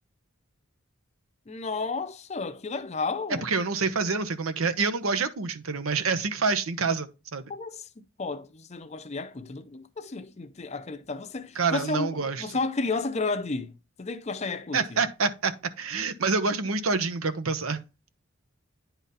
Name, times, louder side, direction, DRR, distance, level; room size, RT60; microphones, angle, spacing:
voice 1, 1.5-3.4 7.5-15.0, left 3 dB, 30° left, 0.5 m, -32 dB
voice 2, 3.4-7.5 11.6-12.6 14.7-17.8, right 4 dB, 80° right, 0.8 m, -27 dB
9.7 x 3.9 x 4.1 m
head